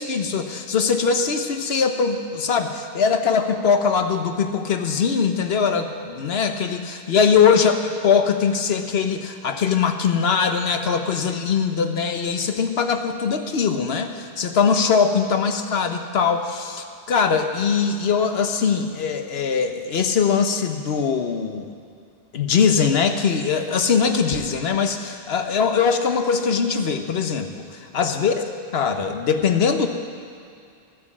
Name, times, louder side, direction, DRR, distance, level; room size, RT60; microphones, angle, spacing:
voice 1, 0.0-21.7 22.3-27.6 27.9-28.3 28.7-29.9, left 6 dB, 75° left, 7 dB, 1.1 m, -21 dB
13.5 x 9.4 x 7.3 m, 2.3 s
omnidirectional pair, 1.0 m